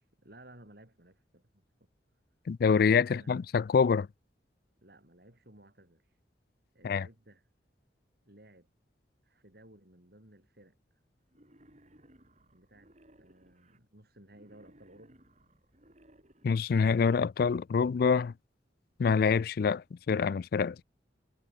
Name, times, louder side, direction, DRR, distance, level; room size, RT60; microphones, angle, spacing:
voice 1, 0.0-1.7 2.7-3.3 4.8-6.2 6.7-7.5 8.2-8.7 9.2-10.7 12.5-12.9 13.2-15.2, right 1 dB, 55° right, 6.7 m, -57 dB
voice 2, 2.5-4.1 6.8-7.1 16.4-18.3 19.0-20.8, left 5 dB, 55° left, 0.3 m, -26 dB
Wild animals, 11.3-13.8 14.3-16.8, right 1 dB, 40° right, 5.0 m, -61 dB
head